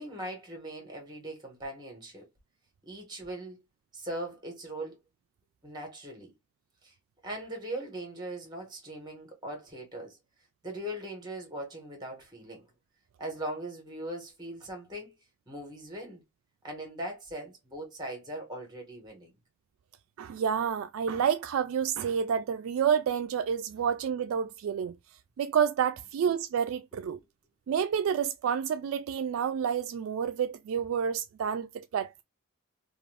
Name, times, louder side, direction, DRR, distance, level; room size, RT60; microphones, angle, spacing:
voice 1, 0.0-2.3 2.9-3.6 3.9-5.0 5.6-6.3 6.8-6.9 7.2-10.2 10.6-12.7 13.2-15.1 15.5-16.2 16.6-19.3 26.9-27.2, right 1 dB, 20° right, 1.2 m, -40 dB
voice 2, 20.2-24.9 25.4-27.2 27.7-32.2, right 7 dB, 75° right, 0.3 m, -29 dB
2.5 x 2.3 x 3.3 m
head